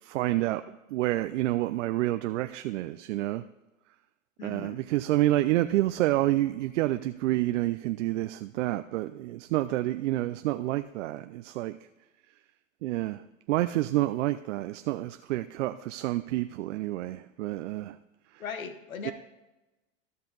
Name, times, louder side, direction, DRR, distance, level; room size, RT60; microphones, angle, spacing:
voice 1, 0.0-3.4 4.4-11.8 12.8-13.2 13.5-18.0 19.0-19.1, right 16 dB, 65° right, 0.5 m, -28 dB
voice 2, 4.4-4.8 18.4-19.1, left 6 dB, 90° left, 1.1 m, -38 dB
14.0 x 5.6 x 4.0 m
hypercardioid pair, 115°, 40 cm